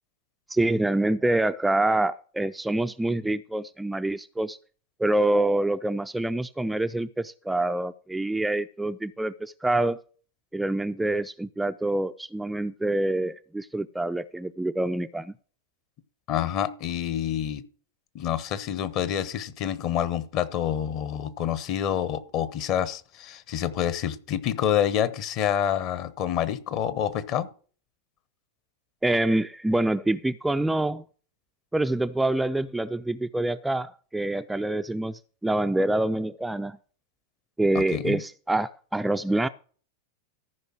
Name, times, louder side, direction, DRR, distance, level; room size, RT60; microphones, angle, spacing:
voice 1, 0.5-4.6 5.0-10.0 10.5-15.3 29.0-31.0 31.7-36.8 37.6-39.5, right 2 dB, 5° right, 0.4 m, -26 dB
voice 2, 16.3-17.6 18.1-27.5 37.7-38.2, left 10 dB, 40° left, 1.0 m, -27 dB
14.0 x 5.3 x 6.2 m
figure-of-eight pair, 90°, 0 cm